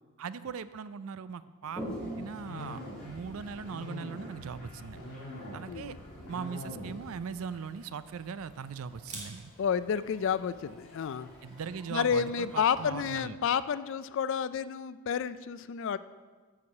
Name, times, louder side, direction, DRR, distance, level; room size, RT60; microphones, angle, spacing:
voice 1, 0.2-5.1 5.5-6.0 6.3-9.5 11.4-13.4, right 6 dB, 65° right, 15 dB, 0.4 m, -40 dB
Toilet flush, 1.6-13.1, equal, 5° left, 2.1 m, -48 dB
sound 1, 2.4-7.4, left 1 dB, 85° left, 2.6 m, -43 dB
voice 2, 5.7-6.0 9.6-11.3 11.9-16.0, left 7 dB, 55° left, 15 dB, 0.3 m, -30 dB
Camera, 7.3-13.1, right 3 dB, 35° right, 1.7 m, -53 dB
9.6 x 4.8 x 7.1 m, 1.4 s
head